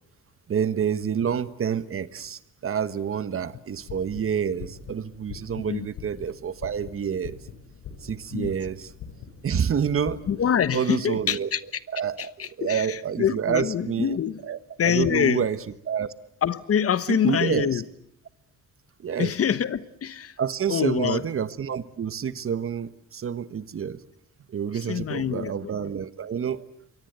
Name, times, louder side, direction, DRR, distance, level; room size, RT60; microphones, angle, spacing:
voice 1, 0.5-7.4 8.0-8.9 9.4-10.2 10.7-11.5 11.9-12.2 12.6-14.2 14.4-15.6 15.9-16.1 17.1-17.7 19.0-19.3 20.4-24.0 24.5-26.6, right 7 dB, 45° right, 1.3 m, -28 dB
sound 1, 3.7-10.3, left 6 dB, 80° left, 4.8 m, -43 dB
voice 2, 10.3-11.6 12.2-14.4 14.8-15.5 16.4-17.8 19.2-20.3 20.7-21.3 24.7-25.9, left 8 dB, 50° left, 1.1 m, -25 dB
28.0 x 23.0 x 8.0 m
cardioid pair, 90°, 30 cm